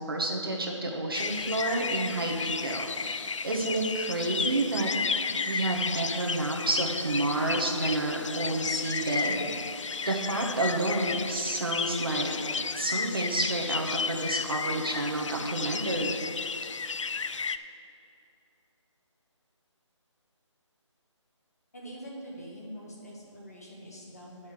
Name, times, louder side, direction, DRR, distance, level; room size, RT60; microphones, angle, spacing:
voice 1, 0.0-4.9 5.5-9.5 10.1-16.2, right 2 dB, 45° right, 1 dB, 1.1 m, -30 dB
sound 1, 1.1-17.6, left 5 dB, 75° left, 0.4 m, -33 dB
voice 2, 21.7-24.5, equal, 30° left, -4 dB, 1.5 m, -44 dB
10.5 x 5.7 x 6.6 m, 2.6 s
figure-of-eight pair, 180°, 16 cm